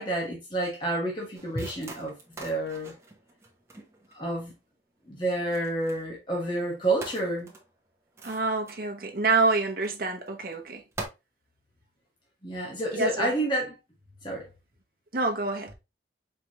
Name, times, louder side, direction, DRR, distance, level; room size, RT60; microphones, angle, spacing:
voice 1, 0.0-2.9 4.1-4.5 5.1-7.5 12.4-13.7 14.2-14.5, right 1 dB, 25° left, 1.2 m, -29 dB
sound 1, 1.3-4.6 5.2-6.1 6.5-6.7 7.0-9.3 9.8-9.9 10.3-10.5 10.9-11.1, right 2 dB, 15° right, 0.9 m, -44 dB
voice 2, 8.2-10.8 12.9-13.3 15.1-15.7, right 3 dB, 55° right, 0.9 m, -27 dB
4.5 x 3.4 x 2.9 m
head